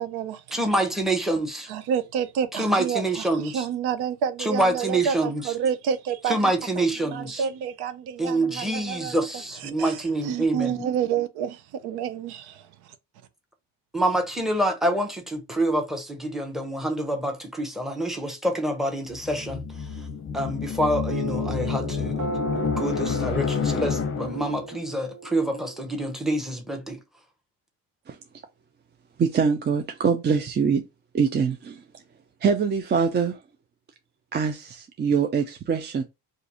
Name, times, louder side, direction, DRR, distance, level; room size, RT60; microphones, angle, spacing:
voice 1, 0.0-0.4 1.7-6.5 7.0-12.5, right 8 dB, 85° right, 0.6 m, -29 dB
voice 2, 0.5-1.7 2.5-3.6 4.5-5.4 6.3-7.4 8.2-10.9 13.9-19.6 20.3-22.2 22.5-27.0, right 1 dB, ahead, 0.8 m, -26 dB
sound 1, 19.1-24.6, left 6 dB, 35° left, 0.6 m, -29 dB
sound 2, 21.1-26.1, right 4 dB, 50° right, 1.1 m, -35 dB
voice 3, 29.2-30.8 31.1-31.8 32.4-33.4 34.3-36.0, right 6 dB, 30° right, 0.4 m, -24 dB
2.6 x 2.5 x 4.1 m
cardioid pair, 95°, 38 cm